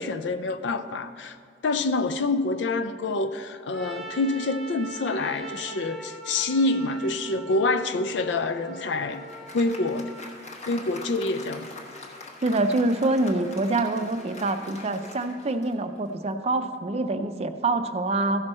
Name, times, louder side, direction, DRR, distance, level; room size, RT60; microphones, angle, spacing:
voice 1, 0.0-1.4 1.6-9.2 9.5-10.1 10.7-11.7, left 2 dB, 75° left, 11 dB, 0.5 m, -26 dB
Trumpet, 3.7-10.3, right 1 dB, ahead, 0.7 m, -42 dB
Applause, 8.7-16.2, left 3 dB, 40° left, 1.2 m, -43 dB
voice 2, 12.4-18.4, right 2 dB, 35° right, 9 dB, 0.5 m, -25 dB
15.0 x 6.2 x 4.3 m, 2.2 s
head